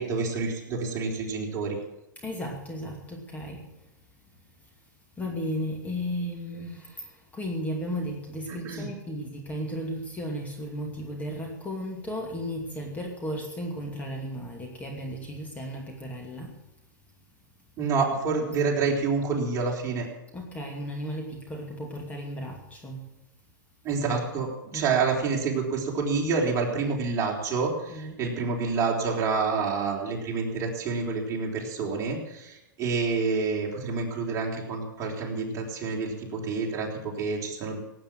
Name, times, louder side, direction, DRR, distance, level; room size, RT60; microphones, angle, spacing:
voice 1, 0.0-1.8 8.6-8.9 17.8-20.1 23.8-37.8, right 4 dB, 30° right, -1 dB, 4.1 m, -28 dB
voice 2, 2.2-3.7 5.2-16.6 20.3-23.0 24.7-24.9 27.9-28.1, equal, 15° left, 1 dB, 2.5 m, -35 dB
17.0 x 8.9 x 7.6 m, 0.95 s
hypercardioid pair, 125°, 10 cm